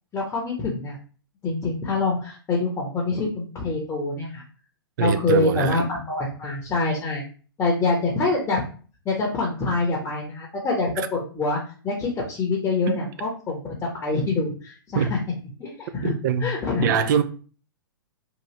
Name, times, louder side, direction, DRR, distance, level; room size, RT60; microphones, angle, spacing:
voice 1, 0.1-1.0 1.4-4.4 5.0-7.2 7.6-8.6 9.0-15.2 15.6-16.1 16.4-17.1, left 3 dB, 20° left, 0.8 m, -25 dB
voice 2, 5.0-5.8 12.9-13.0 15.0-15.1 16.0-16.5 16.8-17.2, right 8 dB, 55° right, 0.4 m, -23 dB
2.9 x 2.4 x 3.1 m
hypercardioid pair, 115°, 13 cm